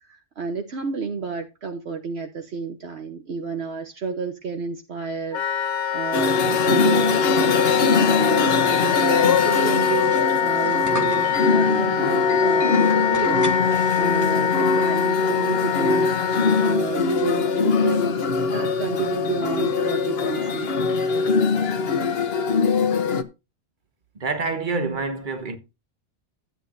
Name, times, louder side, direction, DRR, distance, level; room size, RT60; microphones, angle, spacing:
voice 1, 0.1-7.3 8.0-20.7, right 5 dB, 65° right, 1.2 m, -31 dB
Wind instrument woodwind instrument, 5.3-16.8, left 9 dB, 85° left, 1.2 m, -24 dB
sound 1, 6.1-23.2, left 4 dB, 60° left, 1.1 m, -22 dB
sound 2, 9.3-14.6, right 1 dB, 15° right, 1.2 m, -39 dB
voice 2, 24.1-25.6, right 3 dB, 45° right, 1.4 m, -27 dB
13.0 x 8.7 x 2.5 m
omnidirectional pair, 1.2 m